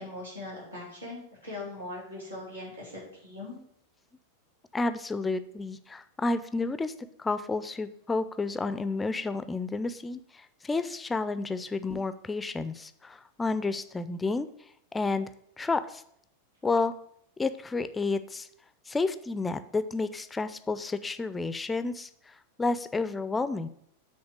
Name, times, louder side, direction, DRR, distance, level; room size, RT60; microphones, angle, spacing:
voice 1, 0.0-3.6, left 2 dB, 80° right, -3 dB, 2.7 m, -40 dB
voice 2, 4.7-6.9 7.2-14.5 14.9-15.3 15.6-16.0 16.6-16.9 17.4-18.5 18.9-23.7, left 3 dB, 10° left, 12 dB, 0.4 m, -31 dB
7.9 x 3.3 x 6.3 m, 0.70 s
figure-of-eight pair, 90°, 0 cm